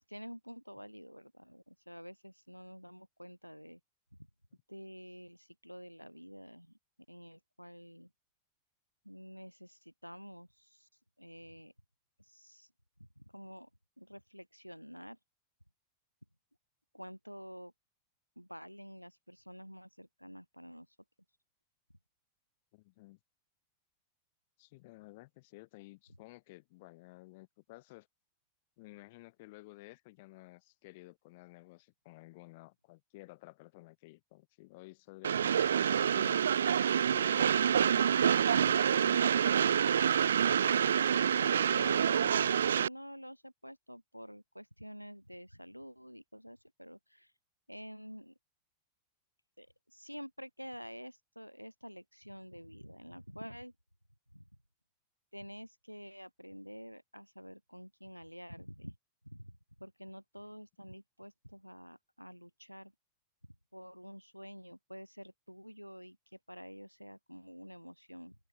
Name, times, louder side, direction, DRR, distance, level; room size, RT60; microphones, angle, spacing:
voice 1, 0.0-3.8 4.1-4.2 4.7-6.8 7.1-8.1 9.0-10.9 11.2-11.7 12.2-12.7 13.2-13.7 14.0-15.2 16.9-17.7 18.4-20.9 41.1-47.3 47.7-48.3 49.6-53.7 54.3-54.4 55.3-59.0 59.2-62.9 63.7-68.4, equal, 90° left, 2.8 m, -49 dB
voice 2, 22.7-23.2 24.6-28.1 28.8-36.4 37.1-38.0 38.6-39.5 60.4-60.5, left 22 dB, 50° left, 4.4 m, -54 dB
Train, 35.2-42.9, right 8 dB, 65° right, 0.4 m, -27 dB
open air
figure-of-eight pair, 90°, 0 cm